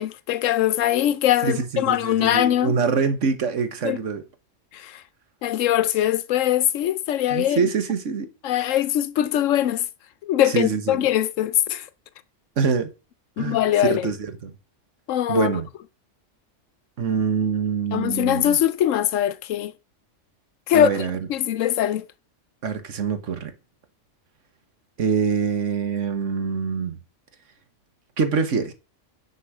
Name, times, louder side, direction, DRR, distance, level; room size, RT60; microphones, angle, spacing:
voice 1, 0.0-2.8 3.8-4.0 4.7-5.0 5.4-7.6 8.4-9.8 10.2-11.9 13.4-14.1 15.1-15.5 17.9-19.7 20.7-20.9 21.3-22.0, left 11 dB, 85° left, 1.0 m, -22 dB
voice 2, 1.4-4.2 7.3-8.3 10.5-11.0 12.6-12.9 13.4-13.6 13.8-14.2 14.4-14.5 15.3-15.7 17.0-18.6 20.7-21.3 22.6-23.5 25.0-27.0 28.2-28.7, right 5 dB, 75° right, 1.6 m, -24 dB
9.9 x 5.3 x 4.8 m
omnidirectional pair, 1.3 m